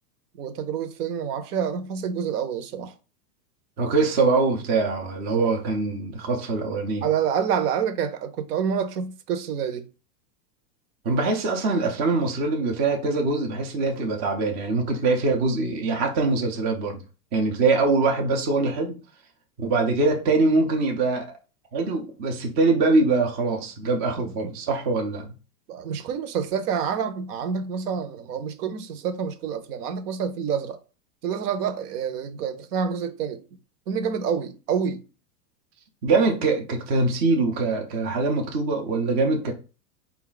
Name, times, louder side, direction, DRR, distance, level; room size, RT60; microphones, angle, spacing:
voice 1, 0.3-2.9 5.4-5.5 7.0-9.8 25.7-30.8 31.2-33.4 33.9-35.0, right 7 dB, 70° right, 0.8 m, -27 dB
voice 2, 3.8-7.1 11.0-17.0 17.3-19.0 19.6-21.3 21.7-25.3 36.0-39.5, right 3 dB, 20° right, 0.3 m, -23 dB
4.1 x 2.4 x 3.8 m
supercardioid pair, 135°, 50 cm